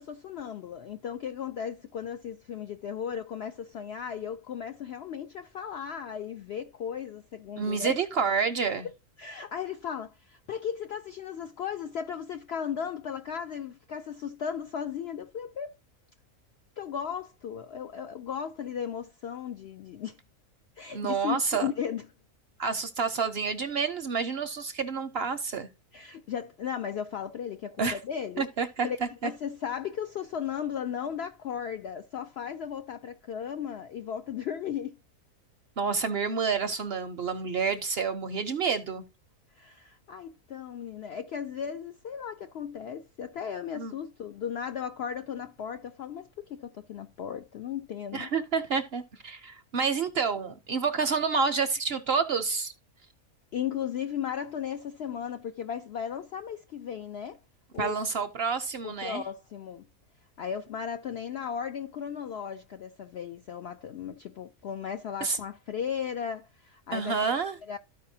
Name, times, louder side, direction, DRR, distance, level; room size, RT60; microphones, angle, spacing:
voice 1, 0.0-8.0 9.2-15.7 16.8-20.2 20.8-22.1 25.9-28.5 28.8-29.0 29.2-35.0 39.5-48.3 53.5-57.4 57.7-58.0 58.8-59.9 60.4-67.2 67.7-67.8, left 8 dB, 70° left, 0.6 m, -36 dB
voice 2, 7.6-8.9 20.9-21.7 22.6-25.7 27.8-28.0 28.4-29.3 35.8-39.0 43.8-43.9 48.1-52.7 57.8-59.2 65.2-65.4 66.9-67.6, right 5 dB, 55° right, 0.7 m, -29 dB
13.5 x 4.8 x 2.7 m
omnidirectional pair, 1.6 m